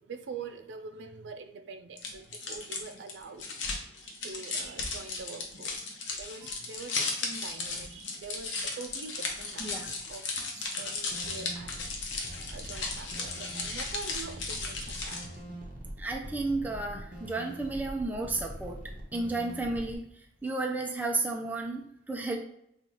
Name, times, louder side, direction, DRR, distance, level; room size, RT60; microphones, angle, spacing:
voice 1, 0.0-3.5 4.0-5.8 6.2-11.8 12.5-15.2, right 4 dB, 80° right, 9 dB, 0.4 m, -44 dB
sound 1, 2.0-15.4, left 3 dB, 85° left, 0.8 m, -36 dB
voice 2, 9.6-9.9 16.0-18.8 19.1-20.1 20.4-22.4, right 2 dB, 10° right, 1 dB, 0.4 m, -32 dB
sound 2, 11.1-19.9, right 1 dB, 45° right, 0.7 m, -43 dB
5.3 x 2.4 x 3.0 m, 0.74 s
head